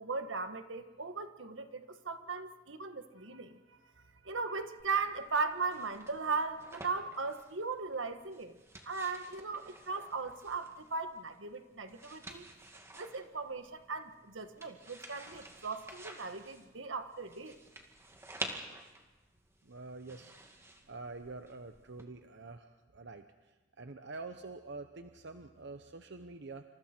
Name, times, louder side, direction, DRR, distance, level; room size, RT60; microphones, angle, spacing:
voice 1, 0.0-3.6 4.2-8.5 8.8-12.5 12.9-17.6, right 4 dB, 85° right, 8 dB, 1.5 m, -38 dB
sound 1, 4.8-22.0, right 2 dB, 15° right, 2.2 m, -50 dB
voice 2, 19.6-20.3 20.9-26.6, right 3 dB, 65° right, 7 dB, 1.0 m, -47 dB
28.0 x 27.5 x 4.5 m, 1.2 s
head